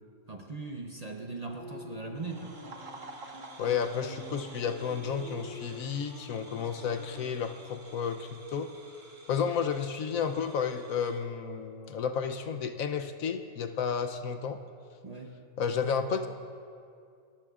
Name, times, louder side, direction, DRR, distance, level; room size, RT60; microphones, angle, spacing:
voice 1, 0.3-2.5 15.0-15.4, right 3 dB, 35° right, 3 dB, 0.7 m, -40 dB
sound 1, 1.6-7.2, left 1 dB, 15° left, 2.5 m, -47 dB
sound 2, 2.2-11.3, right 3 dB, 65° right, 1.8 m, -51 dB
voice 2, 3.6-8.7 9.3-14.6 15.6-16.3, left 6 dB, 75° left, 7 dB, 1.1 m, -32 dB
29.0 x 15.0 x 2.5 m, 2.3 s
omnidirectional pair, 1.5 m